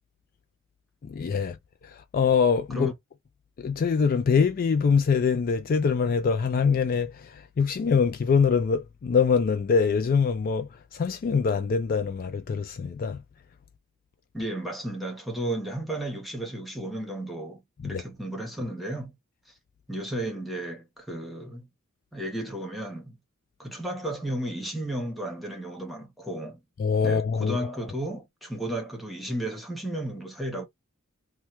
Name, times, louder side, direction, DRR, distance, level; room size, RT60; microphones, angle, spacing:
voice 1, 1.0-1.6 1.8-2.9 3.6-13.2 17.8-18.0 26.8-27.6, left 5 dB, 40° left, 0.3 m, -24 dB
voice 2, 14.3-19.2 19.9-21.7 22.1-23.2 23.6-26.6 27.0-30.7, right 1 dB, ahead, 1.0 m, -33 dB
2.9 x 2.2 x 3.1 m
head